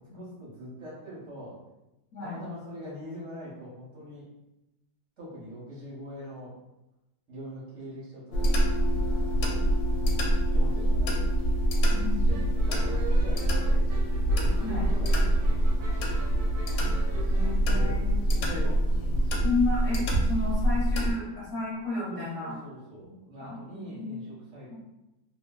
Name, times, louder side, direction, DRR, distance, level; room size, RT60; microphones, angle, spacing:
voice 1, 0.1-1.6 2.2-4.2 5.2-6.5 7.3-9.6 10.5-11.3 11.9-13.8 14.4-15.8 17.0-17.1 17.5-18.0 18.4-19.4 22.1-24.7, equal, 50° right, -7 dB, 0.9 m, -43 dB
sound 1, 8.3-21.1, right 1 dB, 80° left, 1.3 m, -25 dB
voice 2, 11.9-12.3 14.6-14.9 17.3-18.2 19.4-22.5 23.0-23.1 23.4-24.3, left 3 dB, 50° left, -12 dB, 1.2 m, -32 dB
sound 2, 12.3-17.5, right 4 dB, 85° right, 1.4 m, -43 dB
3.2 x 2.2 x 2.2 m, 0.94 s
omnidirectional pair, 2.2 m